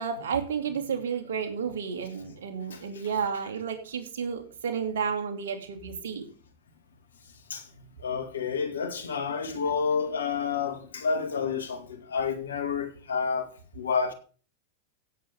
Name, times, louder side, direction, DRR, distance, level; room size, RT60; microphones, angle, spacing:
voice 1, 0.0-6.3, right 6 dB, 70° right, 2.7 m, -31 dB
voice 2, 8.0-13.5 13.7-14.1, left 5 dB, 80° left, 2.2 m, -29 dB
16.0 x 7.9 x 3.7 m
hypercardioid pair, 95°, 0 cm